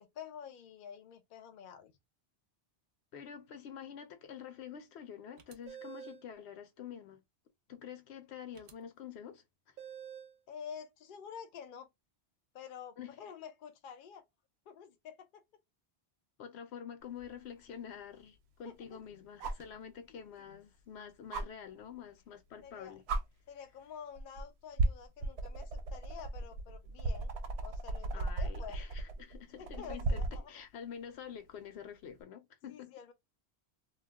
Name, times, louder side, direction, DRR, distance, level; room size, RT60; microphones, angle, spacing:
voice 1, 0.0-1.9 10.5-11.9 12.5-14.2 14.7-15.4 18.6-19.0 20.1-20.5 22.6-23.0 23.5-27.3 27.6-28.8 29.6-30.5 32.7-33.1, left 8 dB, 60° left, 0.7 m, -49 dB
voice 2, 3.1-7.2 7.7-9.4 13.0-13.2 16.4-23.0 28.1-32.9, left 8 dB, 85° left, 0.9 m, -47 dB
sound 1, 5.4-6.3 8.5-8.7 9.8-10.4, right 8 dB, 60° right, 0.6 m, -48 dB
sound 2, 17.2-17.3 19.4-19.7 21.3-21.5 22.6-22.7 23.1-23.2 24.1-24.4 24.8-30.4 32.1-32.2, right 3 dB, 85° right, 0.8 m, -35 dB
2.3 x 2.3 x 3.4 m
omnidirectional pair, 1.1 m